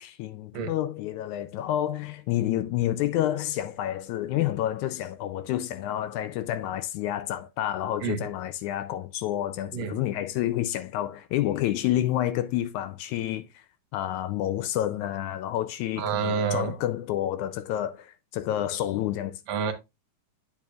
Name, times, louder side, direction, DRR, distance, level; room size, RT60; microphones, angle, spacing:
voice 1, 0.0-13.6 13.9-19.4, left 13 dB, 85° left, 1.7 m, -29 dB
voice 2, 16.0-16.7 19.5-19.7, right 6 dB, 65° right, 2.0 m, -28 dB
8.5 x 6.8 x 2.4 m
omnidirectional pair, 3.9 m